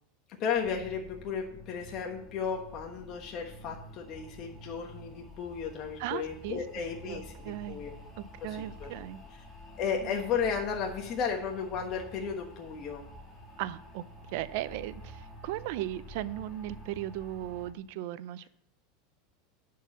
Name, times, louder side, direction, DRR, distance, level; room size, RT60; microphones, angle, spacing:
voice 1, 0.4-7.9 8.4-8.9 9.8-13.0, left 6 dB, 40° left, 2 dB, 1.3 m, -34 dB
sound 1, 0.6-17.7, left 1 dB, 15° left, 1.8 m, -49 dB
voice 2, 6.0-6.6 7.0-7.8 8.2-9.2 10.0-10.1 13.6-14.0 14.3-18.5, right 14 dB, 60° right, 15 dB, 0.6 m, -37 dB
10.5 x 4.7 x 7.2 m, 0.71 s
supercardioid pair, 145°, 0 cm